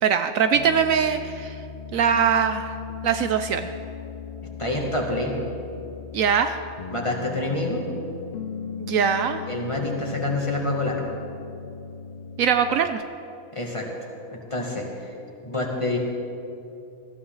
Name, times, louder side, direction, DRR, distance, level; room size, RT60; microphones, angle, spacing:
voice 1, 0.0-1.6 1.9-2.7 3.0-3.7 6.1-6.6 8.8-9.4 12.4-13.0, right 7 dB, 70° right, 8 dB, 1.0 m, -22 dB
Piano, 0.5-13.0, left 6 dB, 80° left, 0.4 m, -37 dB
voice 2, 4.6-5.3 6.9-7.8 9.5-11.1 13.5-15.1 15.4-16.0, left 2 dB, 20° left, -1 dB, 1.9 m, -27 dB
20.5 x 14.0 x 3.9 m, 2.8 s
omnidirectional pair, 1.6 m